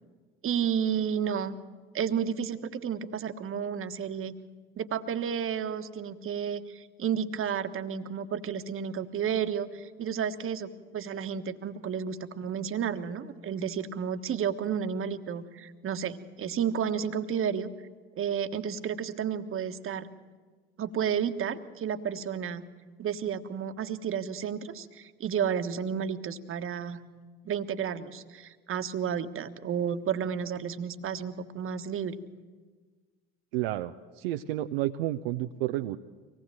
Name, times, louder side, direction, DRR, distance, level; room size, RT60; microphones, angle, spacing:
voice 1, 0.4-1.6 1.9-4.3 4.8-17.7 18.2-20.1 20.8-22.6 23.0-27.0 27.4-32.2, right 8 dB, 45° right, 10 dB, 1.4 m, -32 dB
voice 2, 33.5-36.0, right 15 dB, 70° right, 8 dB, 0.7 m, -31 dB
25.0 x 18.5 x 7.6 m, 1.4 s
figure-of-eight pair, 55°, 31 cm